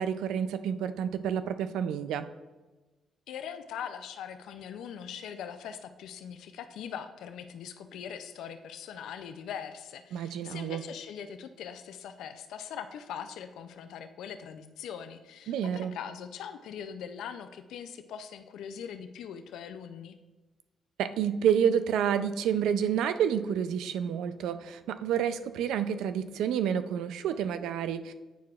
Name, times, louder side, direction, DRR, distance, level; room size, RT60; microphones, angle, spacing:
voice 1, 0.0-2.3 10.1-10.8 15.5-15.9 21.0-28.1, right 8 dB, 85° right, 11 dB, 0.3 m, -29 dB
voice 2, 3.3-20.2, left 8 dB, 80° left, 9 dB, 0.4 m, -41 dB
9.0 x 4.7 x 2.4 m, 1.2 s
cardioid pair, 90°, 0 cm